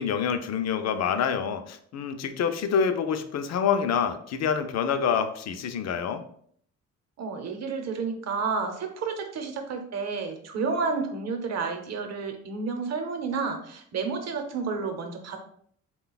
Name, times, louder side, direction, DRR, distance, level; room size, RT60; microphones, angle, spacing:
voice 1, 0.0-6.2, left 7 dB, 60° left, 8 dB, 0.5 m, -27 dB
voice 2, 7.2-15.4, right 4 dB, 60° right, 5 dB, 0.8 m, -31 dB
3.9 x 2.3 x 3.9 m, 0.62 s
cardioid pair, 90°, 30 cm